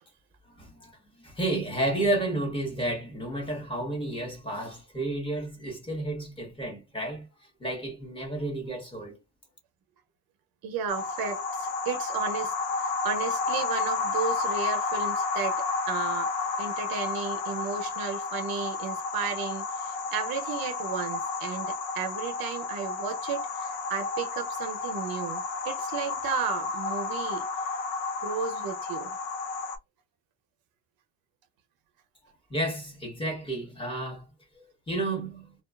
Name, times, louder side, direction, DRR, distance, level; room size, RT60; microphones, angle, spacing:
voice 1, 0.6-0.9 1.2-7.3 7.6-9.2 32.5-34.3 34.6-35.5, right 1 dB, 15° left, 1.0 m, -31 dB
voice 2, 10.6-15.6 15.9-16.3 16.6-27.4 28.2-29.2, right 6 dB, 60° right, 0.6 m, -34 dB
sound 1, 10.9-29.8, left 4 dB, 85° left, 0.7 m, -31 dB
2.5 x 2.3 x 2.3 m
cardioid pair, 130°, 40 cm